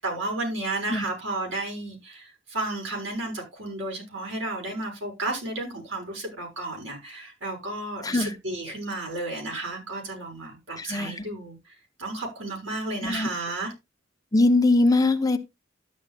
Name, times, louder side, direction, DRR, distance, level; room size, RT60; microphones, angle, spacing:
voice 1, 0.0-13.7, right 2 dB, 85° right, 6.3 m, -33 dB
voice 2, 8.0-8.3 10.8-11.2 13.0-13.3 14.3-15.4, left 2 dB, 20° left, 1.1 m, -22 dB
12.5 x 10.0 x 2.5 m
head